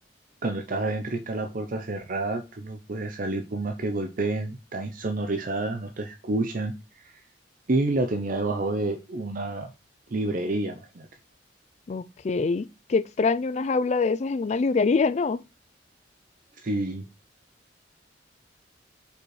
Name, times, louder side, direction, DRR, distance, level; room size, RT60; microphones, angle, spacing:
voice 1, 0.4-6.7 7.7-9.7 10.1-11.1 16.6-17.0, right 2 dB, 50° right, 0.6 m, -29 dB
voice 2, 11.9-15.4, left 4 dB, 40° left, 0.4 m, -25 dB
5.3 x 4.4 x 4.7 m
head